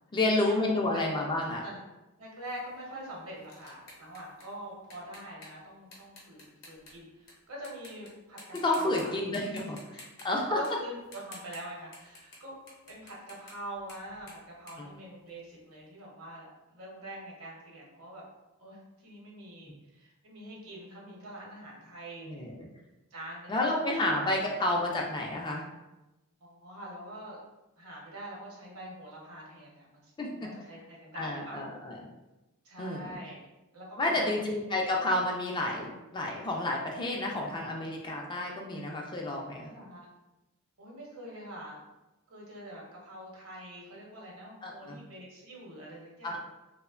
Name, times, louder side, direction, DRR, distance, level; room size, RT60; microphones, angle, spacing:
voice 1, 0.1-1.6 8.6-10.6 14.8-14.9 22.2-22.7 23.5-25.6 30.2-30.3 31.1-32.0 32.8-33.2 34.0-39.7 44.6-45.0 46.2-46.4, left 2 dB, 20° left, 0 dB, 0.3 m, -30 dB
voice 2, 2.2-9.1 9.6-9.7 10.5-16.5 16.7-18.2 18.6-22.3 23.1-23.6 23.9-24.1 26.4-27.4 27.8-31.6 32.6-33.5 33.7-34.4 39.7-40.0 40.8-41.8 42.3-46.4, right 1 dB, 75° right, -3 dB, 0.8 m, -44 dB
sound 1, 2.4-7.3 7.6-8.1 8.4-9.0 9.3-15.7, left 2 dB, 45° left, 0.7 m, -52 dB
2.8 x 2.1 x 2.4 m, 1.0 s
head